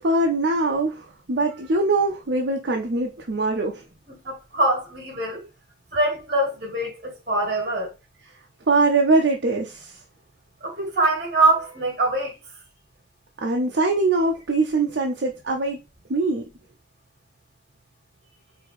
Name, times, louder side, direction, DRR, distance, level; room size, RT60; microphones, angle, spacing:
voice 1, 0.0-3.8 8.7-10.0 13.4-15.8 16.1-16.5, right 2 dB, 70° right, 0.6 m, -22 dB
voice 2, 4.1-5.4 5.9-7.9 10.6-12.3, right 2 dB, 45° right, 1.5 m, -23 dB
4.9 x 2.8 x 3.1 m
head